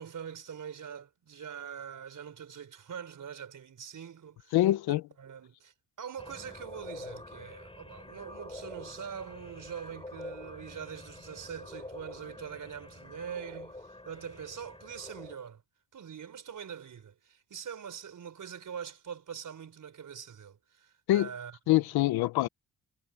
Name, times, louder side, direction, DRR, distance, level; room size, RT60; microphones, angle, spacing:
voice 1, 0.0-4.6 5.2-15.6 15.9-21.6, right 7 dB, 55° right, 4.6 m, -43 dB
voice 2, 4.5-5.0 21.1-21.3 21.7-22.5, left 15 dB, 85° left, 1.1 m, -24 dB
sound 1, 6.2-15.4, left 2 dB, 15° left, 7.8 m, -47 dB
supercardioid pair, 70°, 37 cm